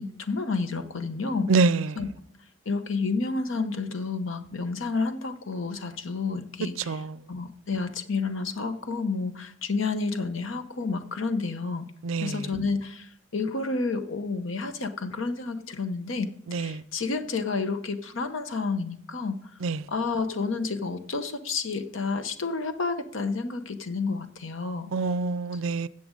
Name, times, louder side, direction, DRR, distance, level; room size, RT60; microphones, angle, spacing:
voice 1, 0.0-1.5 2.0-2.1 2.7-11.9 12.2-19.4 19.9-24.9 25.5-25.6, left 4 dB, 75° left, 0.9 m, -30 dB
voice 2, 1.5-1.9 6.9-7.1 12.0-12.3 16.5-16.7 19.6-19.8 24.9-25.9, right 4 dB, 85° right, 0.4 m, -25 dB
13.5 x 7.7 x 3.8 m
head